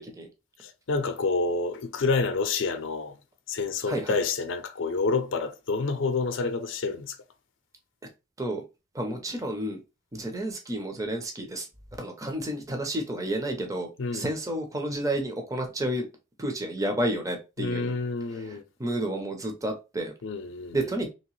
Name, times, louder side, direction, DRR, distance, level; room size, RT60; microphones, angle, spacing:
voice 1, 0.6-3.2 3.5-7.2 14.0-14.3 17.6-18.6 20.2-21.0, left 4 dB, 75° left, 0.5 m, -28 dB
voice 2, 9.0-9.8 10.2-11.6 12.0-13.9 14.1-16.1 16.4-17.9 18.8-20.1 20.7-21.1, right 1 dB, 15° right, 0.5 m, -30 dB
3.0 x 2.8 x 3.0 m
head